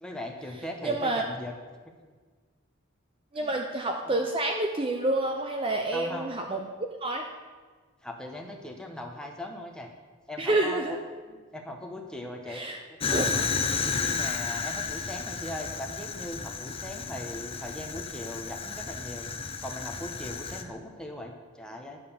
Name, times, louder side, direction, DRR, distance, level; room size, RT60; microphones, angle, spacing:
voice 1, 0.0-1.6 2.0-2.1 3.3-3.5 4.0-4.2 5.9-6.3 8.0-9.9 10.3-11.0 11.3-12.6 14.0-19.3 19.6-22.0, left 1 dB, 5° left, 1 dB, 1.0 m, -39 dB
voice 2, 0.8-1.2 3.3-6.7 7.0-7.3 10.4-11.0 12.5-12.8 13.1-13.3, right 2 dB, 25° right, 3 dB, 0.6 m, -28 dB
Fire, 13.0-20.6, left 5 dB, 25° left, 0.6 m, -32 dB
10.5 x 7.6 x 7.1 m, 1.5 s
head